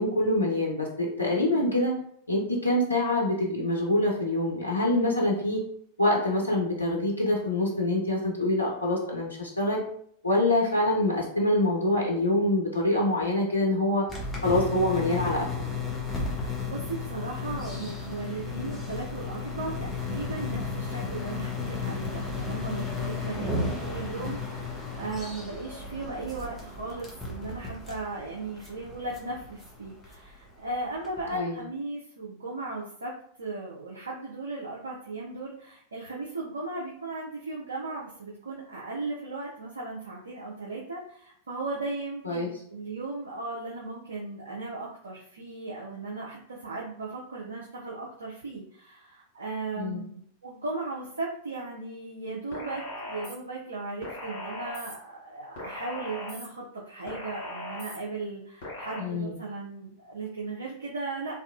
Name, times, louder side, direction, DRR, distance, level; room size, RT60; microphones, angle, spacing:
voice 1, 0.0-1.9 2.3-5.6 6.0-9.8 10.2-14.0 14.4-15.5 23.4-23.6 31.3-31.6 42.2-42.5 49.8-50.0 59.0-59.3, left 1 dB, 80° left, -2 dB, 0.4 m, -25 dB
sound 1, 14.1-31.3, left 3 dB, 5° left, 0.8 m, -34 dB
voice 2, 16.3-61.4, right 3 dB, 75° right, -4 dB, 0.4 m, -37 dB
sound 2, 52.5-53.4 54.0-55.0 55.6-56.5 57.1-58.0 58.6-59.0, left 1 dB, 55° left, 1.1 m, -38 dB
2.7 x 2.3 x 2.4 m, 0.64 s
figure-of-eight pair, 90°, 0 cm